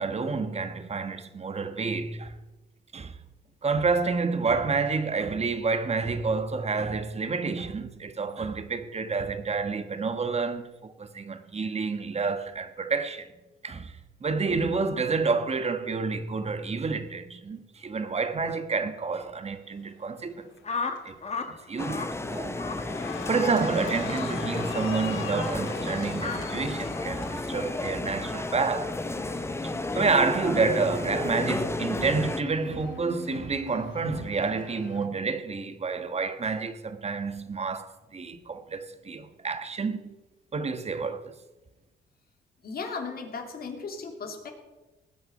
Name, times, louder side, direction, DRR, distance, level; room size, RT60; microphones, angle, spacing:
voice 1, 0.0-2.4 2.9-3.1 3.6-13.3 13.6-20.5 21.0-21.2 21.5-22.6 23.3-29.0 29.6-40.1 40.5-41.3, right 4 dB, 30° right, 1.4 m, -29 dB
Cheering, 20.2-20.6 21.0-35.1, left 6 dB, 80° left, 2.0 m, -41 dB
sound 1, 20.6-21.5 21.8-22.1 22.5-22.8 23.2-23.5 24.1-24.3 25.0-25.3 26.2-26.4, left 4 dB, 35° left, 1.7 m, -33 dB
sound 2, 21.8-32.4, left 2 dB, 15° left, 0.9 m, -32 dB
voice 2, 42.6-44.5, left 4 dB, 50° left, 3.1 m, -36 dB
20.0 x 8.7 x 5.4 m
cardioid pair, 90°, 20 cm